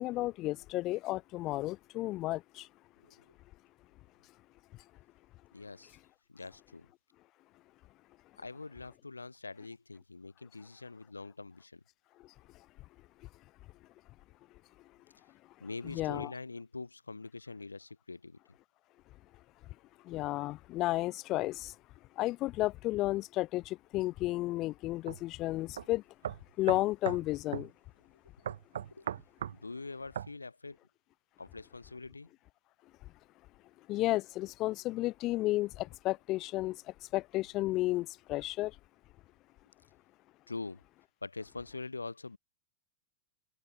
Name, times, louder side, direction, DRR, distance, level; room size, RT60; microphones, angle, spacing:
voice 1, 0.0-2.7 15.8-16.3 20.1-21.7 22.2-26.0 26.6-27.7 33.9-36.8 37.1-38.7, left 17 dB, 35° left, 0.5 m, -32 dB
voice 2, 5.5-6.0 6.3-6.9 8.4-11.8 15.6-18.4 28.9-29.1 29.5-30.8 31.4-32.3 40.5-40.8 41.2-42.4, left 3 dB, 85° left, 0.7 m, -44 dB
sound 1, 25.1-25.2 25.8-25.9 26.2-27.2 27.5-27.7 28.5-29.6 30.2-30.3, right 9 dB, 65° right, 0.3 m, -37 dB
figure-of-eight pair, 95°, 0 cm